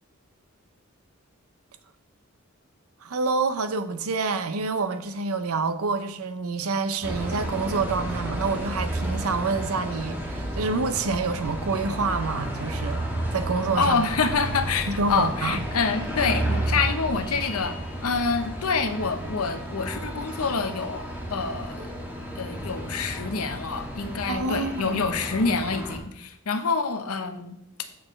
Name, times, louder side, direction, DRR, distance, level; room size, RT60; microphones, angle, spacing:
voice 1, 3.0-13.0 13.3-14.1 14.9-15.6 24.3-25.0, right 4 dB, 75° right, 0.6 m, -27 dB
sound 1, 7.0-26.0, right 1 dB, 10° right, 1.2 m, -32 dB
voice 2, 13.8-17.7 18.0-21.9 22.4-27.6, left 4 dB, 80° left, 0.8 m, -27 dB
8.7 x 6.8 x 3.2 m
head